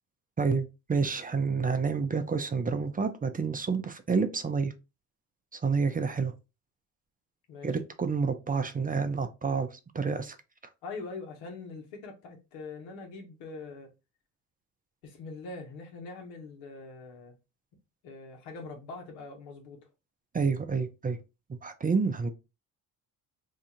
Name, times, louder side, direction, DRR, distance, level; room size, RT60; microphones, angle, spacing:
voice 1, 0.4-4.7 5.5-6.3 7.6-10.4 20.3-21.2 21.5-22.3, right 5 dB, 20° right, 0.6 m, -29 dB
voice 2, 10.8-13.9 15.0-17.3 18.0-19.8, left 3 dB, 85° left, 1.2 m, -43 dB
2.8 x 2.4 x 4.2 m
supercardioid pair, 75°, 38 cm